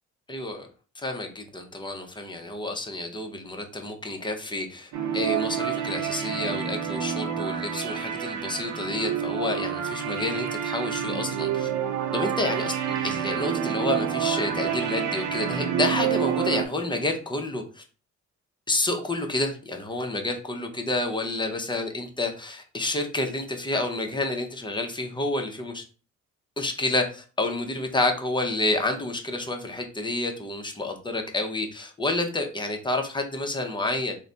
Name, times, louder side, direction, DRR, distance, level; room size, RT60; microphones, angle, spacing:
voice 1, 0.3-0.7 1.0-11.7 12.1-12.7 13.0-17.8 18.7-25.8 26.6-34.2, left 2 dB, 15° left, 3 dB, 0.7 m, -29 dB
sound 1, 4.9-16.6, right 9 dB, 75° right, 0.6 m, -28 dB
3.2 x 2.2 x 3.8 m, 0.37 s
cardioid pair, 90°, 30 cm